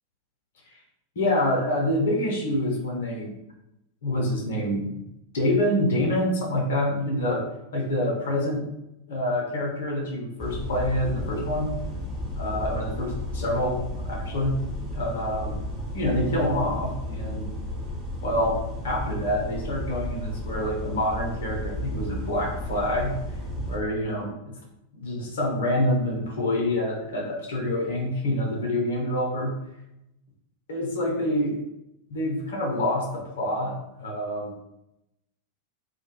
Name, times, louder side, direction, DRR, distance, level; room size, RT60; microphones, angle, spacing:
voice 1, 1.2-3.3 4.0-4.9 5.3-8.6 9.1-11.7 12.4-14.5 14.9-15.5 15.9-17.5 18.2-23.1 23.7-24.3 24.9-29.5 30.7-31.6 32.1-34.5, left 1 dB, 60° left, -1 dB, 0.7 m, -26 dB
sound 1, 10.4-23.8, left 1 dB, 10° right, 0.7 m, -33 dB
2.2 x 2.2 x 2.9 m, 0.85 s
figure-of-eight pair, 90°, 0 cm